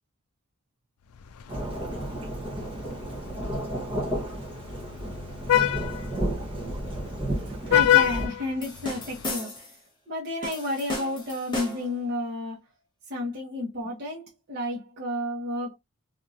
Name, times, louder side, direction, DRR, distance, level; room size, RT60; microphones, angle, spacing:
Vehicle horn car horn honking, 1.2-9.3, left 12 dB, 90° left, 0.4 m, -28 dB
Thunderstorm / Rain, 1.5-8.3, right 1 dB, 25° right, 0.9 m, -32 dB
voice 1, 7.7-9.5 10.1-12.6 13.1-14.2 14.5-15.7, left 1 dB, 45° right, 1.1 m, -31 dB
sound 1, 8.6-9.8 10.4-12.0, left 1 dB, 20° left, 1.1 m, -35 dB
2.8 x 2.7 x 2.4 m
head